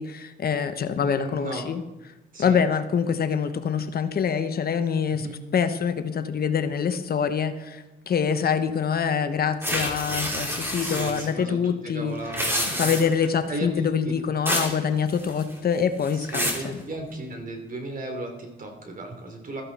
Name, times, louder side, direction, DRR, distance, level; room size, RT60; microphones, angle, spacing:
voice 1, 0.0-1.8 2.4-5.3 5.5-12.2 12.8-16.8, left 7 dB, 50° left, 9 dB, 1.0 m, -25 dB
voice 2, 1.0-1.7 2.3-2.6 5.2-5.4 10.8-13.0 13.5-13.9 16.1-19.6, right 2 dB, 45° right, 4 dB, 3.3 m, -35 dB
sound 1, 9.6-11.3 12.2-13.3 14.5-14.8 15.1-15.6 16.0-16.7, equal, 10° right, 3.6 m, -28 dB
14.5 x 14.0 x 4.2 m, 1.0 s
cardioid pair, 90°, 20 cm